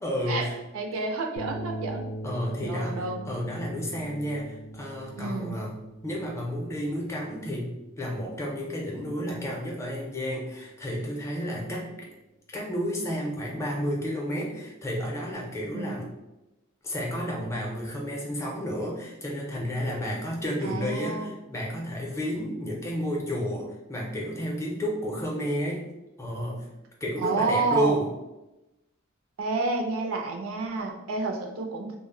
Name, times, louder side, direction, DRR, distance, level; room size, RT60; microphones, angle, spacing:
voice 1, 0.0-0.6 2.2-7.7 8.0-12.1 12.5-16.1 16.8-25.8 26.2-26.7 27.0-28.1, equal, 15° left, -2 dB, 0.5 m, -31 dB
voice 2, 0.7-2.0 2.6-3.2 5.2-5.6 15.7-16.0 20.6-21.3 27.2-28.0 29.4-32.0, right 3 dB, 80° right, 2 dB, 0.4 m, -29 dB
sound 1, 1.4-9.8, right 2 dB, 75° left, 0.5 m, -41 dB
2.1 x 2.0 x 3.6 m, 0.98 s
head